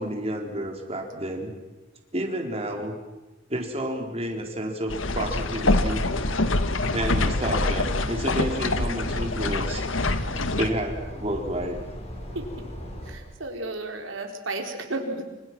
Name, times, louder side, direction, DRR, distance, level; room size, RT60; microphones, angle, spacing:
voice 1, 0.0-1.5 2.1-2.9 3.5-6.0 6.9-9.9 10.6-11.8, right 1 dB, 30° right, 2 dB, 4.0 m, -30 dB
sound 1, 4.9-10.7, left 2 dB, 85° left, 1.7 m, -25 dB
sound 2, 5.0-13.1, equal, 35° left, 5.3 m, -37 dB
voice 2, 13.1-15.3, right 2 dB, 80° right, 4 dB, 4.2 m, -33 dB
29.0 x 25.5 x 6.1 m, 1.0 s
head